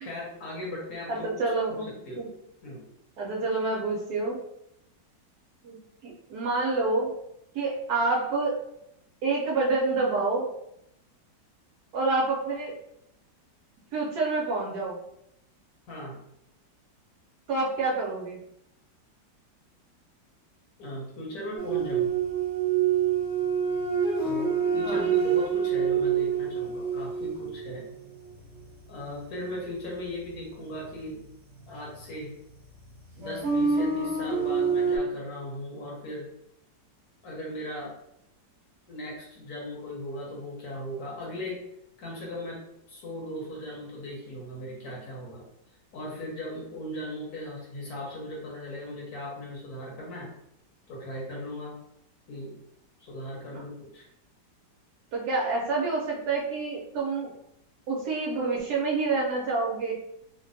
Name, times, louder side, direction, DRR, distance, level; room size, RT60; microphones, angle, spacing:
voice 1, 0.0-1.3 1.7-2.2 2.6-2.9 15.9-16.2 20.8-22.1 24.2-27.9 28.9-31.2 31.7-32.3 33.2-36.3 37.2-37.9 38.9-41.6 42.0-42.6 42.9-45.4 45.9-50.3 50.9-51.8 52.3-52.6 53.0-54.1, left 1 dB, 60° left, -3 dB, 1.1 m, -38 dB
voice 2, 1.1-1.9 2.2-2.3 3.2-4.4 5.6-5.8 6.0-7.1 7.5-8.6 9.2-10.5 11.9-12.7 13.9-15.0 17.5-18.4 24.8-25.1 53.5-53.6 55.1-57.3 57.9-60.0, right 3 dB, 70° right, -3 dB, 1.0 m, -27 dB
sound 1, 21.6-28.3 32.0-32.1 33.2-35.0, right 6 dB, 50° right, 1.1 m, -26 dB
3.2 x 2.2 x 2.6 m, 0.79 s
omnidirectional pair, 2.0 m